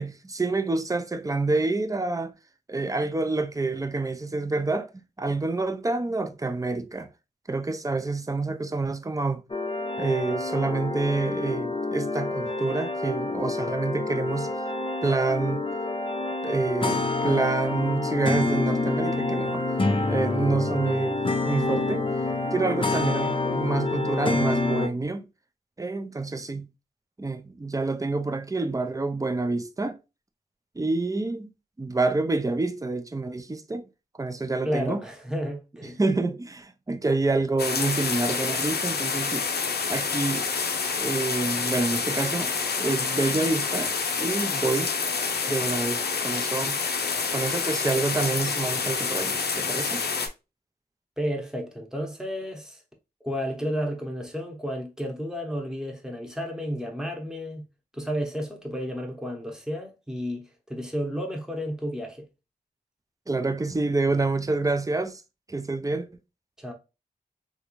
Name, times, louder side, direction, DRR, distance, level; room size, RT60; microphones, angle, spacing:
voice 1, 0.0-2.3 2.7-4.9 5.2-7.1 7.5-9.4 10.0-14.5 15.0-15.6 16.4-19.6 20.1-22.1 22.5-25.2 25.8-26.7 27.2-30.0 30.8-31.5 31.8-33.9 34.2-35.0 35.8-39.5 39.9-40.5 41.0-42.5 42.8-44.9 45.5-46.8 47.3-50.0 63.3-65.2 65.5-66.1, right 3 dB, 20° right, 0.5 m, -27 dB
sound 1, 9.5-24.9, left 2 dB, 30° left, 0.6 m, -27 dB
voice 2, 34.6-36.0 51.2-52.8 53.2-57.6 57.9-62.3 66.6-66.7, equal, 5° right, 0.9 m, -32 dB
sound 2, 37.6-50.3, left 5 dB, 75° left, 0.5 m, -28 dB
3.1 x 2.5 x 3.0 m
cardioid pair, 45°, 17 cm